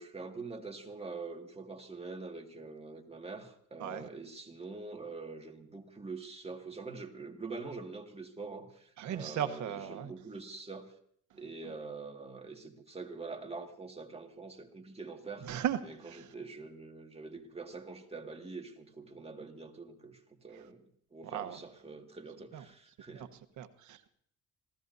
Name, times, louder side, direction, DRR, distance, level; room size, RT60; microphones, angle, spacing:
voice 1, 0.0-10.9 11.3-15.5 15.8-23.3, right 3 dB, 20° right, 2.0 m, -45 dB
voice 2, 9.0-10.1 11.6-11.7 15.4-16.3 20.5-20.6 21.3-21.6 22.5-22.6 23.1-24.1, right 10 dB, 75° right, 1.2 m, -37 dB
26.5 x 16.5 x 2.7 m
cardioid pair, 90°, 30 cm